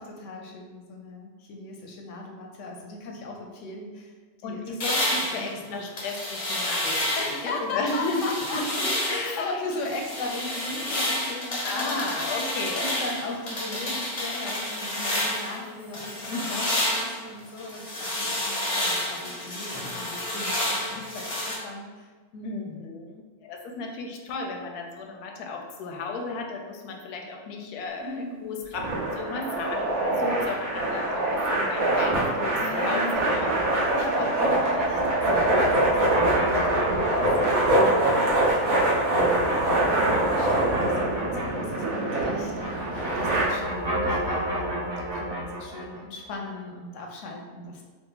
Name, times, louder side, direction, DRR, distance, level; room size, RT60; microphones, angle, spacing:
voice 1, 0.0-4.1 4.4-4.9 5.3-5.8 7.2-12.1 12.7-22.6 28.0-28.4 32.6-47.8, left 2 dB, 65° left, 1 dB, 0.8 m, -38 dB
voice 2, 4.4-7.2 7.4-8.2 8.5-8.8 9.1-9.6 11.6-12.9 16.3-16.7 22.4-28.8 29.1-33.5, left 3 dB, 85° left, 2 dB, 1.1 m, -34 dB
sound 1, 4.8-7.5 7.9-9.3 9.7-15.6 15.9-21.6, left 1 dB, 35° left, 0.5 m, -29 dB
sound 2, 28.7-43.4, right 1 dB, 70° right, 1.4 m, -24 dB
sound 3, 33.1-42.1 42.4-46.0, right 1 dB, 30° right, 0.5 m, -32 dB
3.7 x 2.3 x 3.8 m, 1.4 s
omnidirectional pair, 1.6 m